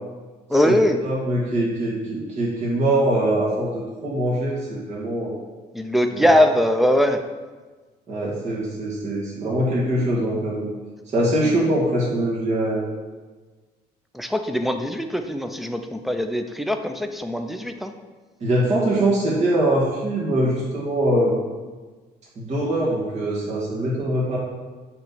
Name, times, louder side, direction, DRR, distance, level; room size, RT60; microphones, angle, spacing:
voice 1, 0.5-1.0 5.7-7.2 14.1-17.9, equal, ahead, 5 dB, 0.5 m, -21 dB
voice 2, 1.0-5.3 6.1-6.3 8.1-10.6 11.1-12.9 18.4-21.4 22.4-24.4, right 1 dB, 40° right, -6 dB, 1.5 m, -23 dB
7.4 x 3.1 x 5.6 m, 1.3 s
cardioid pair, 110°, 17 cm